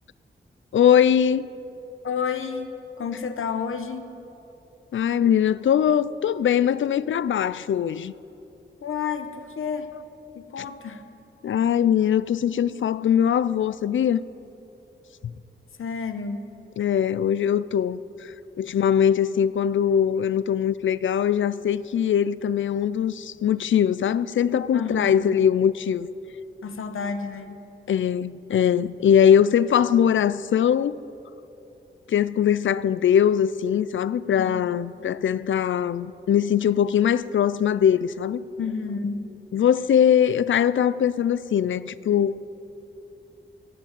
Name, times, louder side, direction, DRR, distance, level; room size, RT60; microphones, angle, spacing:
voice 1, 0.7-1.5 4.9-8.1 11.4-14.2 15.2-15.3 16.8-26.1 27.9-31.0 32.1-38.4 39.5-42.4, left 9 dB, 70° left, 0.4 m, -21 dB
voice 2, 2.0-4.2 8.8-9.9 10.3-11.0 15.8-16.5 24.7-25.4 26.6-27.7 34.4-34.6 38.6-39.3, left 5 dB, 90° left, 1.0 m, -30 dB
15.5 x 9.2 x 8.8 m
wide cardioid pair, 130°, 21 cm